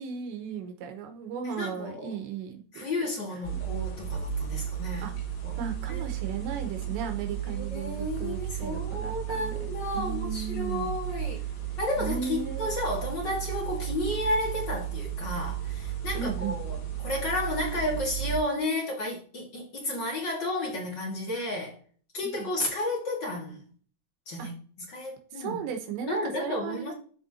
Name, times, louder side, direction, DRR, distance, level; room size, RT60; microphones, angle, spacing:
voice 1, 0.0-2.9 3.3-3.4 5.0-5.1 5.6-10.9 12.0-12.7 16.2-16.6 19.8-19.9 22.2-22.5 24.4-24.5 25.3-26.9, right 7 dB, 90° right, 5 dB, 3.5 m, -36 dB
voice 2, 1.4-2.1 2.7-5.1 5.4-5.6 5.9-6.0 7.5-11.4 11.8-21.8 22.1-23.6 24.3-24.5 24.9-25.6 26.1-26.9, left 1 dB, 40° left, -2 dB, 1.6 m, -32 dB
sound 1, 3.4-18.4, right 11 dB, 85° left, 4.1 m, -34 dB
13.5 x 4.8 x 2.8 m, 0.43 s
omnidirectional pair, 5.0 m